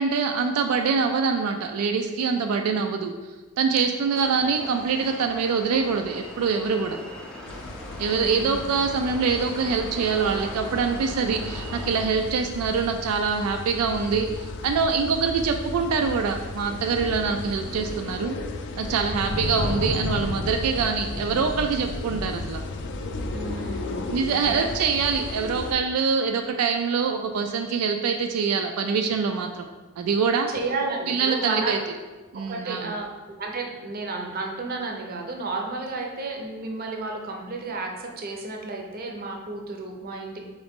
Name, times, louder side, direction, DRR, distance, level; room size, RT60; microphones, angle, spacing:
voice 1, 0.0-3.1 3.6-7.0 8.0-18.4 18.8-22.6 24.1-29.7 30.0-30.5 31.1-31.8 32.3-32.9, right 5 dB, 85° right, 5 dB, 0.3 m, -24 dB
sound 1, 4.1-12.1, equal, 5° left, 0.5 m, -40 dB
sound 2, 7.5-25.7, left 2 dB, 55° left, 0.4 m, -34 dB
voice 2, 8.2-8.7 19.1-19.4 23.3-24.7 30.5-31.8 32.5-40.4, right 3 dB, 45° right, 1 dB, 0.6 m, -32 dB
3.9 x 3.7 x 3.6 m, 1.3 s
head